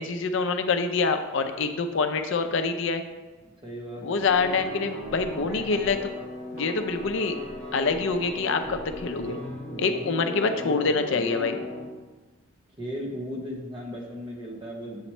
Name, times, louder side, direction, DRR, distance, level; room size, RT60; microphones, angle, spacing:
voice 1, 0.0-3.0 4.0-6.1 6.5-7.4 7.7-9.4 9.8-11.6, left 4 dB, 60° left, 7 dB, 0.4 m, -26 dB
voice 2, 3.6-4.2 9.6-11.7 12.8-15.1, left 1 dB, 20° right, -1 dB, 0.9 m, -37 dB
sound 1, 4.2-11.8, left 1 dB, 75° right, 2.0 m, -37 dB
7.2 x 3.0 x 4.3 m, 1.2 s
head